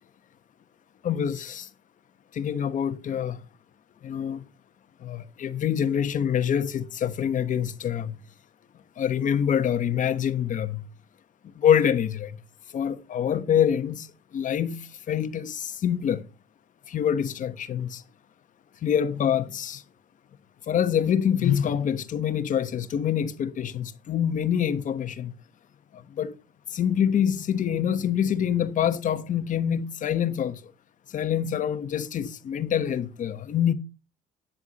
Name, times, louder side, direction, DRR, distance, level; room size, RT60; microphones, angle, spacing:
voice 1, 1.0-1.7 2.3-3.4 4.0-4.4 5.0-8.2 9.0-10.9 11.5-12.4 12.7-16.2 16.9-18.0 18.8-19.8 20.7-25.3 25.9-26.3 26.7-30.6 31.1-33.7, left 9 dB, 50° left, 1.2 m, -26 dB
10.5 x 9.6 x 4.2 m
cardioid pair, 110°, 17 cm